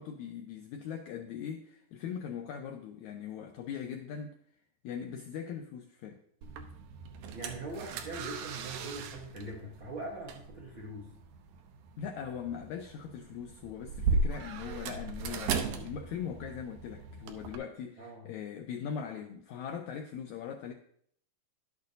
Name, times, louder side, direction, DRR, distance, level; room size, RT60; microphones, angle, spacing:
voice 1, 0.0-4.4 4.8-6.2 12.0-20.7, left 7 dB, 90° left, 1.6 m, -40 dB
sound 1, 6.4-17.6, right 3 dB, 75° right, 2.1 m, -37 dB
voice 2, 7.3-11.1 18.0-18.4, right 2 dB, 55° right, 1.4 m, -42 dB
11.5 x 8.5 x 2.7 m
omnidirectional pair, 4.0 m